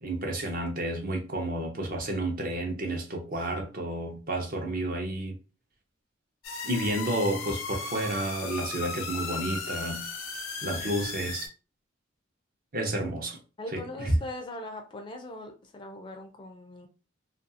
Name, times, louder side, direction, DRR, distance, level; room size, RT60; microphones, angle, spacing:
voice 1, 0.0-5.4 6.6-10.0 10.6-11.5 12.7-13.4 13.7-14.2, right 1 dB, 45° right, 0.6 m, -31 dB
sound 1, 6.4-11.5, left 4 dB, 85° left, 0.6 m, -36 dB
voice 2, 13.6-16.9, left 1 dB, 25° left, 0.4 m, -40 dB
2.5 x 2.3 x 2.7 m
head